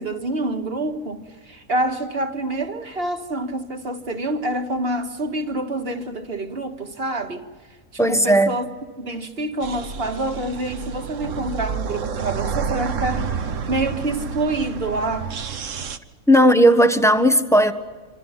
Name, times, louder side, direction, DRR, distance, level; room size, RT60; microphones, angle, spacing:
voice 1, 0.0-7.5 8.1-8.7 9.0-13.3 13.7-15.3, right 2 dB, 45° right, 2.0 m, -27 dB
voice 2, 8.0-8.5 16.3-17.7, equal, ahead, 1.2 m, -15 dB
sound 1, 9.6-16.0, right 6 dB, 65° right, 1.4 m, -29 dB
27.0 x 27.0 x 5.8 m
omnidirectional pair, 1.4 m